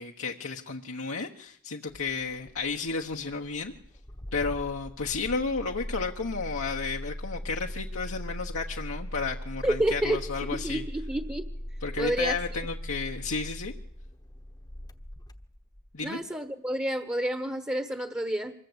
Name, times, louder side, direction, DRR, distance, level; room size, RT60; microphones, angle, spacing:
voice 1, 0.0-3.7 4.3-10.8 11.8-13.7 15.9-16.2, left 4 dB, 70° left, 1 dB, 1.3 m, -32 dB
Engine starting, 1.9-16.0, equal, 20° left, 1.1 m, -40 dB
voice 2, 9.6-10.2 10.5-11.4 12.0-12.3 16.0-18.5, right 1 dB, 10° right, 7 dB, 1.2 m, -29 dB
25.0 x 22.0 x 8.2 m, 0.64 s
head